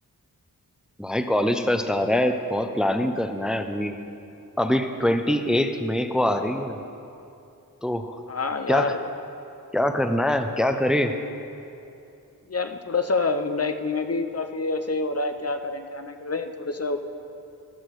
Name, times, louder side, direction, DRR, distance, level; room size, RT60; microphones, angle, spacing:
voice 1, 1.0-4.0 4.6-6.8 7.8-8.1 8.7-8.9 9.7-11.1, left 1 dB, ahead, 6 dB, 0.7 m, -23 dB
voice 2, 8.3-9.0 12.5-17.0, left 3 dB, 40° left, 7 dB, 0.7 m, -27 dB
13.0 x 12.0 x 4.8 m, 2.8 s
wide cardioid pair, 60°, 37 cm